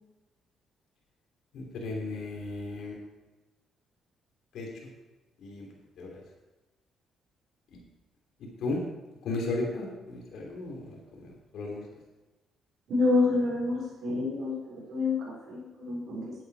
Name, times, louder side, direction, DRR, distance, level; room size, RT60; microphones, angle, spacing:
voice 1, 1.5-3.0 4.5-4.7 5.4-5.7 6.0-6.2 8.6-8.8 9.2-11.3 11.5-11.8, left 2 dB, 75° left, -1 dB, 3.0 m, -35 dB
voice 2, 12.9-16.3, left 3 dB, 70° right, -6 dB, 4.2 m, -28 dB
9.9 x 9.0 x 4.8 m, 1.1 s
cardioid pair, 90°, 0 cm